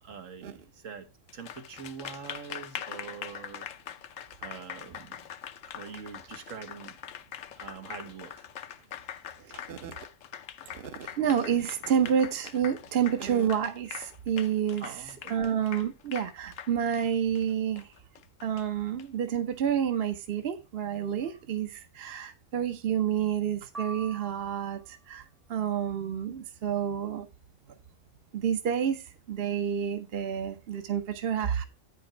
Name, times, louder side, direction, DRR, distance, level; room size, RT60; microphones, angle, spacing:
voice 1, 0.0-1.1 1.3-3.7 4.4-5.2 5.7-7.0 7.5-8.5 8.8-9.6 14.8-15.4, right 6 dB, 80° right, 1.5 m, -44 dB
Applause, 1.3-19.0, left 9 dB, 75° left, 1.0 m, -43 dB
voice 2, 9.5-9.9 10.6-17.9 18.4-27.3 28.3-31.6, right 8 dB, 55° right, 0.9 m, -29 dB
sound 1, 23.7-25.0, right 3 dB, ahead, 0.7 m, -43 dB
8.9 x 5.2 x 5.0 m
omnidirectional pair, 1.3 m